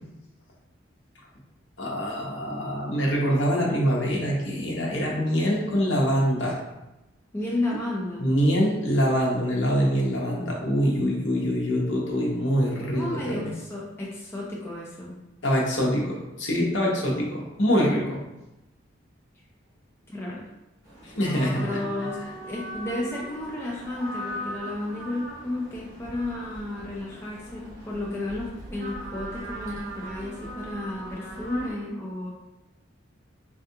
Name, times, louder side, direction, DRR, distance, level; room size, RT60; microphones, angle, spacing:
voice 1, 1.8-6.6 8.2-13.5 15.4-18.2 21.0-21.6, equal, 65° left, -3 dB, 0.7 m, -24 dB
voice 2, 7.3-8.3 12.9-15.1 20.1-20.4 21.5-22.2 22.4-32.3, left 2 dB, 10° left, -5 dB, 0.4 m, -32 dB
sound 1, 20.8-31.7, equal, 45° right, 1.3 m, -39 dB
3.4 x 2.3 x 2.7 m, 0.98 s
head